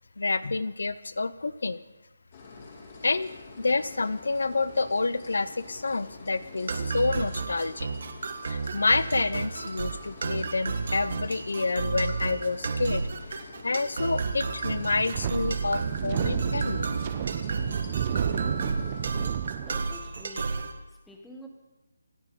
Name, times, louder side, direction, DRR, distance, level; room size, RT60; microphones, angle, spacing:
voice 1, 0.2-1.8 3.0-7.9 8.5-13.1 13.6-16.9, left 3 dB, 75° left, 16 dB, 0.7 m, -28 dB
sound 1, 2.3-19.0, left 3 dB, 30° left, 2.9 m, -47 dB
sound 2, 6.7-20.7, right 4 dB, 50° right, 1.5 m, -32 dB
Wind, 14.7-20.3, right 9 dB, 25° right, 0.6 m, -32 dB
voice 2, 19.6-20.6 20.9-21.5, equal, 5° left, 1 dB, 1.4 m, -48 dB
26.5 x 11.0 x 4.1 m, 1.0 s
hypercardioid pair, 170°, 0 cm